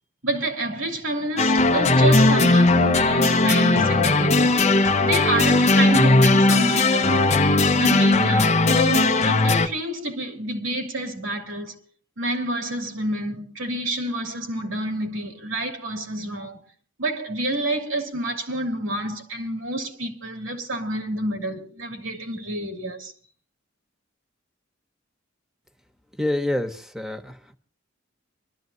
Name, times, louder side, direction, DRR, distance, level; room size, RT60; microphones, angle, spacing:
voice 1, 0.2-4.6 5.0-7.4 7.8-11.8 12.2-16.6 17.0-23.1, right 1 dB, 90° right, 2.8 m, -28 dB
sound 1, 1.4-9.7, left 2 dB, 35° left, 0.7 m, -18 dB
voice 2, 26.1-27.5, left 1 dB, ahead, 1.1 m, -27 dB
25.5 x 13.0 x 2.8 m
head